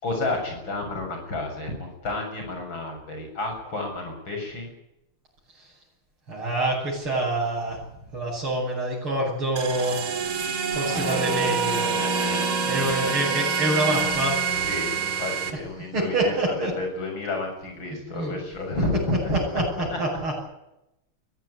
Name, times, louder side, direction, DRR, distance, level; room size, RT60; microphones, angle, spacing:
voice 1, 0.0-4.7 12.0-13.2 14.6-19.4 19.9-20.0, left 2 dB, 65° left, 3 dB, 7.8 m, -31 dB
voice 2, 6.3-7.8 8.1-10.4 10.7-12.0 12.6-14.4 15.9-16.7 18.1-18.3 19.5-20.3, right 1 dB, 90° right, -6 dB, 8.3 m, -26 dB
sound 1, 9.6-15.5, right 5 dB, 75° right, 2.8 m, -26 dB
22.0 x 16.5 x 9.9 m, 0.88 s
omnidirectional pair, 2.3 m